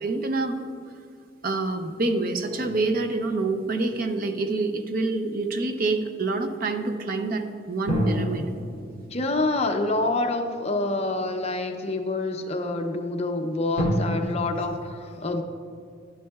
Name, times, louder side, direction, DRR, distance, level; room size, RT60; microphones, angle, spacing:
voice 1, 0.0-0.6 1.4-8.5, right 3 dB, 45° right, 6 dB, 0.6 m, -27 dB
sound 1, 2.4-5.0 7.9-11.2 11.9-12.0 13.8-13.9, equal, 75° right, 2.4 m, -33 dB
voice 2, 9.1-15.4, left 2 dB, 30° left, 5 dB, 0.6 m, -27 dB
11.5 x 9.3 x 2.3 m, 2.3 s
head